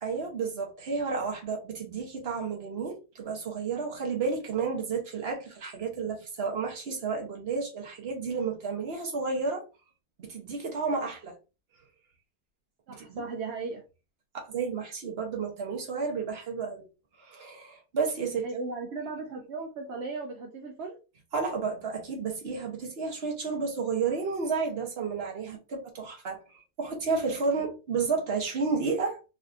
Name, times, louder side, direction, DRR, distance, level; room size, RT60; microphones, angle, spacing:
voice 1, 0.0-9.6 10.2-11.3 12.9-13.2 14.3-16.9 17.2-18.5 21.3-29.2, right 5 dB, 45° right, 1.0 m, -31 dB
voice 2, 12.9-13.8 18.4-21.0, right 3 dB, 60° right, 0.7 m, -36 dB
3.4 x 2.6 x 2.4 m
omnidirectional pair, 1.7 m